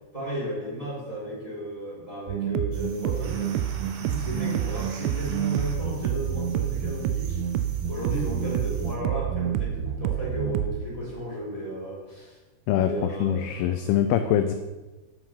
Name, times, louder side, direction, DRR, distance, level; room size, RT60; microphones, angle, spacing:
voice 1, 0.1-3.6 4.0-7.4 7.9-12.4 12.7-13.9, equal, 10° right, -6 dB, 3.4 m, -34 dB
sound 1, 2.3-10.9, right 10 dB, 90° right, 2.9 m, -28 dB
sound 2, 2.7-9.0, right 5 dB, 70° right, 3.2 m, -46 dB
voice 2, 13.2-14.5, left 10 dB, 85° left, 8 dB, 2.2 m, -23 dB
9.7 x 8.8 x 5.5 m, 1.2 s
omnidirectional pair, 5.1 m